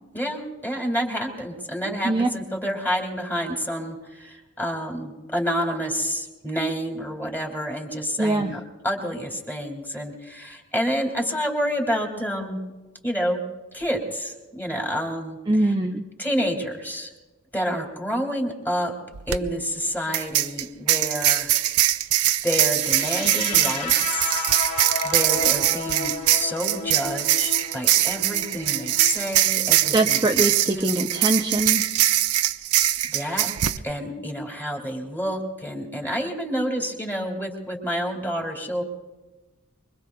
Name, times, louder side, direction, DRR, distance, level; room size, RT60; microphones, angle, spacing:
voice 1, 0.1-12.6 13.0-13.4 13.7-15.4 16.2-17.1 17.5-18.9 19.3-21.5 22.4-24.5 25.0-31.2 33.1-33.5 33.8-38.8, equal, 10° left, 1 dB, 2.5 m, -29 dB
voice 2, 8.2-8.5 15.5-16.0 29.9-31.8, right 2 dB, 20° right, 1 dB, 0.7 m, -22 dB
sound 1, 19.1-19.4 20.1-33.8, right 13 dB, 80° right, 0.6 m, -22 dB
sound 2, 22.6-30.6, left 3 dB, 70° left, 1.5 m, -34 dB
24.5 x 23.5 x 2.3 m, 1.2 s
head